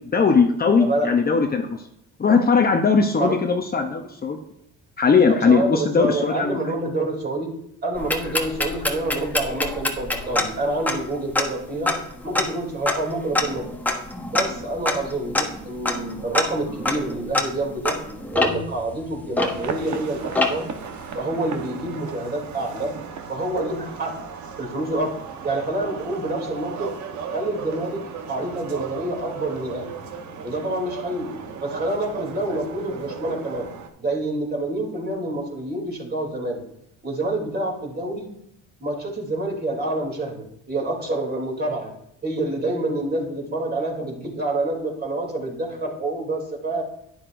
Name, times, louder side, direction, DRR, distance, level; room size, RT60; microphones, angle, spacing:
voice 1, 0.1-1.8 2.2-4.4 5.0-6.7, left 5 dB, 25° left, 4 dB, 0.8 m, -19 dB
voice 2, 0.8-1.1 3.2-3.4 5.3-7.5 7.8-11.9 12.2-13.7 14.3-18.0 18.3-20.7 21.1-22.9 23.3-24.1 24.6-25.1 25.4-26.9 27.3-29.9 30.4-31.4 31.6-33.7 34.0-36.6 37.0-38.3 38.8-41.9 42.2-46.8, right 2 dB, 30° right, -1 dB, 2.9 m, -27 dB
sound 1, 8.0-20.0 20.4-20.8, left 2 dB, 5° left, 1.0 m, -26 dB
sound 2, 19.4-33.9, right 6 dB, 55° right, 1.1 m, -36 dB
11.0 x 9.7 x 2.6 m, 0.76 s
cardioid pair, 100°, 34 cm